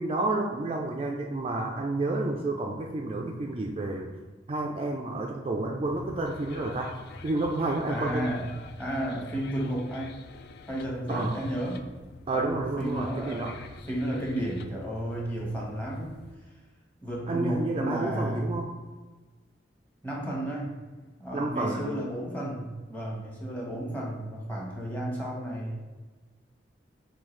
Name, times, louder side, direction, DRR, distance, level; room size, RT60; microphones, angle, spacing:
voice 1, 0.0-4.1 4.5-6.9 7.2-8.3 11.1-11.4 12.3-13.5 17.3-18.7 21.3-21.9, right 2 dB, 30° right, 0 dB, 0.3 m, -30 dB
sound 1, 5.8-16.3, left 3 dB, 60° left, 0.3 m, -47 dB
voice 2, 7.9-8.5 8.8-10.1 10.7-11.8 12.3-13.6 13.9-16.2 17.0-18.6 20.0-20.7 21.2-25.8, right 1 dB, 10° left, -4 dB, 1.0 m, -32 dB
5.4 x 2.6 x 3.1 m, 1.3 s
head